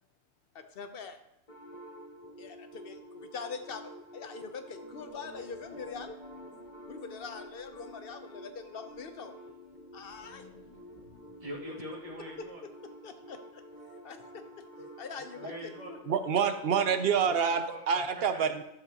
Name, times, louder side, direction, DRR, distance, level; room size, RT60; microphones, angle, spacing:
voice 1, 0.5-1.2 2.4-6.1 6.6-9.3 9.9-10.5 13.0-13.6 14.0-14.6 15.0-16.0, left 5 dB, 60° left, 8 dB, 0.9 m, -43 dB
sound 1, 1.5-17.5, right 1 dB, 35° left, 1.9 m, -50 dB
sound 2, 4.8-12.5, left 2 dB, 90° left, 2.3 m, -54 dB
voice 2, 11.4-12.6 14.8-14.9 15.3-15.9 17.2-18.0 18.3-18.4, equal, 30° right, -5 dB, 2.2 m, -43 dB
voice 3, 16.1-18.6, right 7 dB, 65° right, 9 dB, 0.9 m, -27 dB
12.0 x 6.7 x 2.9 m, 0.82 s
omnidirectional pair, 1.1 m